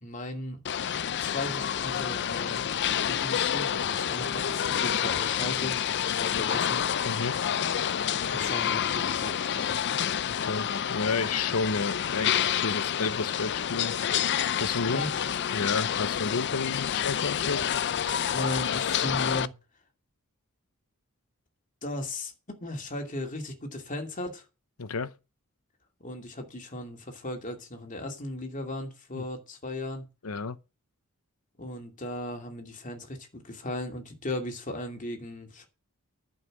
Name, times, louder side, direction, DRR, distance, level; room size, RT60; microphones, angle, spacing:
voice 1, 0.0-0.6 1.2-2.7 3.1-6.8 8.3-9.8 14.9-15.1 18.1-19.5 21.8-22.3 22.6-24.4 26.0-30.1 31.6-35.7, left 1 dB, 35° left, 2.5 m, -36 dB
sound 1, 0.7-19.5, left 9 dB, 50° left, 0.5 m, -28 dB
voice 2, 7.0-7.4 10.3-14.0 14.6-17.8 24.8-25.1 29.1-29.2 30.2-30.6, left 4 dB, 75° left, 0.9 m, -31 dB
11.5 x 5.7 x 7.6 m
head